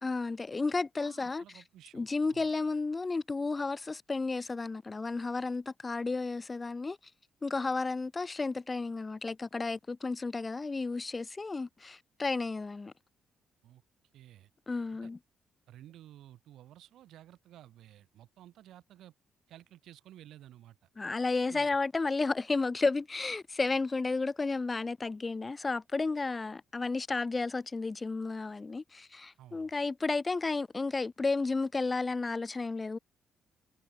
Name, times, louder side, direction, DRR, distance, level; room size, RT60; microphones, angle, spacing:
voice 1, 0.0-1.4 1.9-7.0 7.4-12.9 14.7-15.2 21.0-33.0, left 3 dB, 25° left, 0.4 m, -32 dB
voice 2, 1.0-2.0 2.3-2.5 13.6-13.8 14.1-14.5 15.0-15.1 15.7-19.1 19.5-20.8 21.5-21.7 29.4-29.7, right 12 dB, 80° right, 6.7 m, -54 dB
cardioid pair, 90°, 0 cm